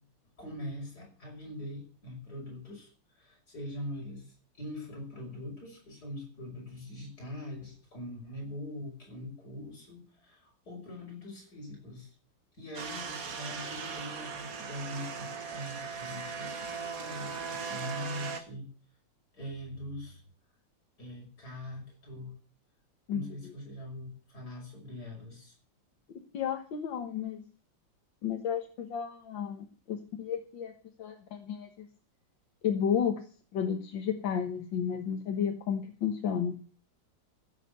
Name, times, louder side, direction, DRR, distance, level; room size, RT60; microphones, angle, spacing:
voice 1, 0.4-2.9 3.2-12.1 12.6-18.7 19.3-20.2 21.0-22.3 23.1-25.5, left 1 dB, 55° left, -1 dB, 6.5 m, -42 dB
sound 1, 12.7-18.4, right 5 dB, 50° right, 1.8 m, -38 dB
voice 2, 26.1-27.4 28.2-30.7 31.0-31.9 32.6-33.3 33.5-36.6, left 8 dB, 80° left, 5 dB, 2.1 m, -32 dB
15.5 x 7.5 x 8.2 m, 0.41 s
omnidirectional pair, 2.0 m